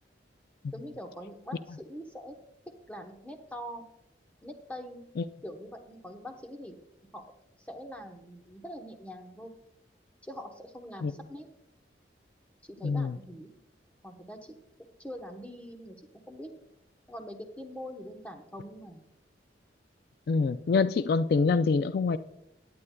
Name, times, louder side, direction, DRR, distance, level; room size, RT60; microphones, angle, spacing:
voice 1, 0.7-2.4 2.9-3.9 4.4-5.0 5.4-6.8 7.1-7.2 7.6-9.5 10.2-11.5 12.6-13.5 14.0-14.6 15.0-16.5 17.1-19.1, equal, 10° left, 4 dB, 0.9 m, -43 dB
voice 2, 12.8-13.1 20.3-22.2, left 4 dB, 60° left, 12 dB, 0.3 m, -25 dB
17.5 x 9.6 x 2.2 m, 0.85 s
head